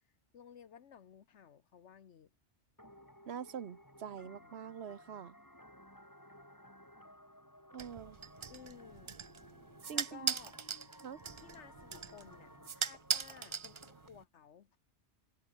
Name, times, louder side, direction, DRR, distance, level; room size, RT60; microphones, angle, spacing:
voice 1, 0.3-2.3 4.2-4.7 8.5-9.2 9.9-10.5 11.4-14.7, left 8 dB, 80° left, 1.3 m, -56 dB
sound 1, 2.8-14.1, equal, 15° left, 6.7 m, -58 dB
voice 2, 3.3-5.4 7.7-8.2 9.9-10.3 11.0-11.2, right 8 dB, 65° right, 1.2 m, -44 dB
sound 2, 7.8-14.2, right 6 dB, 45° right, 0.4 m, -40 dB
omnidirectional pair, 1.2 m